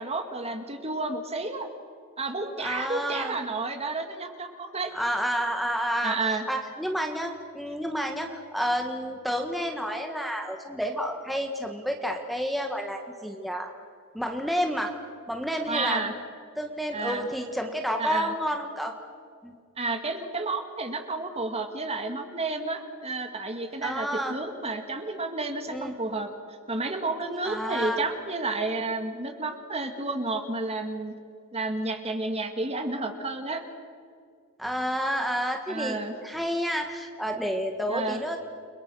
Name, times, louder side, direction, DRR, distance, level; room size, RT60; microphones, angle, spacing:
voice 1, 0.0-1.7 2.2-4.9 6.0-6.4 15.7-16.1 16.9-17.3 18.0-18.3 19.8-26.3 26.7-31.1 31.5-33.6 35.7-36.1 37.9-38.2, right 3 dB, 30° right, 6 dB, 2.1 m, -31 dB
voice 2, 2.6-3.4 4.9-6.2 6.5-13.7 14.1-14.9 15.3-16.0 16.6-18.9 19.4-19.5 23.8-24.3 25.7-25.9 27.4-28.0 34.6-38.4, equal, ahead, 3 dB, 1.7 m, -30 dB
30.0 x 23.0 x 6.3 m, 2.1 s
head